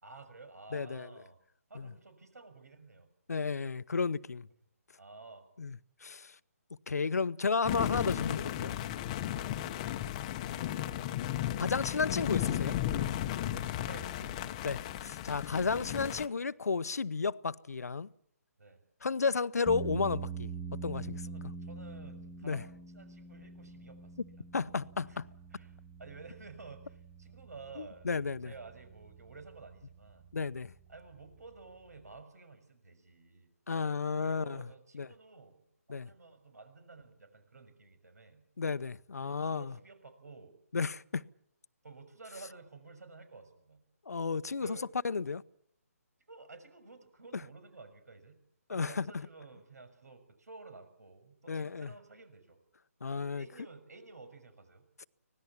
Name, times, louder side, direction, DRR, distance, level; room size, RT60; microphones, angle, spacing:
voice 1, 0.0-1.4 1.7-3.1 5.0-5.5 9.3-9.7 13.9-14.5 18.6-18.8 21.3-24.2 25.1-25.2 25.5-28.1 28.4-30.3 30.9-33.5 34.2-38.4 39.2-40.6 41.8-43.8 44.6-44.9 46.3-48.4 48.7-52.6 53.3-54.9, right 3 dB, 85° right, 6.4 m, -52 dB
voice 2, 0.7-1.1 1.7-1.9 3.3-4.5 5.6-6.3 6.9-8.7 11.6-12.8 14.6-18.1 19.0-21.2 22.4-22.6 24.5-25.3 27.8-28.5 30.3-30.7 33.7-34.7 34.9-35.1 35.9-36.1 38.6-39.7 40.7-41.2 44.1-44.8 45.0-45.4 48.7-49.1 51.5-51.9 53.0-53.4, left 5 dB, 85° left, 0.8 m, -33 dB
sound 1, 7.6-16.3, left 12 dB, 20° left, 0.9 m, -35 dB
sound 2, 19.7-32.2, right 5 dB, ahead, 1.0 m, -45 dB
25.0 x 18.5 x 7.3 m
hypercardioid pair, 160°, 8 cm